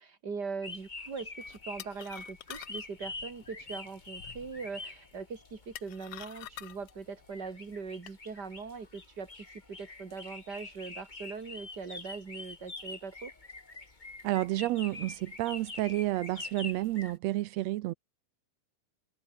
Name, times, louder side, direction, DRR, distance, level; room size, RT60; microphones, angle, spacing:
voice 1, 0.0-9.3 9.7-13.3, right 5 dB, 30° right, 3.5 m, -41 dB
sound 1, 0.6-17.2, left 3 dB, 20° left, 1.6 m, -46 dB
sound 2, 1.4-8.2, left 12 dB, 65° left, 1.5 m, -50 dB
voice 2, 14.2-17.9, right 17 dB, 80° right, 1.5 m, -30 dB
omnidirectional pair, 3.7 m